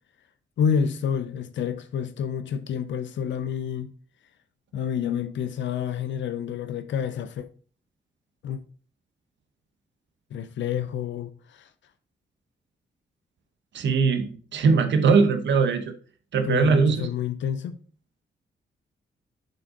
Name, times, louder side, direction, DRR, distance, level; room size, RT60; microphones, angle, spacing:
voice 1, 0.6-3.9 4.7-7.5 8.4-8.6 10.3-11.7 16.4-17.8, left 8 dB, 80° left, 0.6 m, -28 dB
voice 2, 13.7-15.8 16.3-17.1, right 5 dB, 80° right, 1.0 m, -21 dB
7.8 x 3.7 x 5.0 m
cardioid pair, 70°, 19 cm